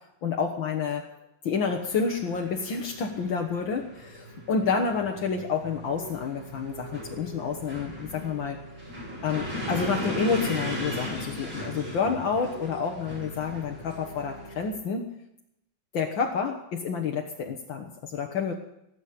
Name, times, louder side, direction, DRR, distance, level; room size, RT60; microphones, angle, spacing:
voice 1, 0.2-1.0 1.4-8.6 9.2-15.0 15.9-18.5, left 5 dB, 75° left, 1 dB, 2.0 m, -29 dB
sound 1, 1.7-14.7, left 1 dB, 75° right, 8.2 m, -38 dB
sound 2, 9.6-12.3, right 6 dB, 45° right, 1.4 m, -44 dB
18.0 x 8.2 x 8.4 m, 0.81 s
omnidirectional pair, 2.1 m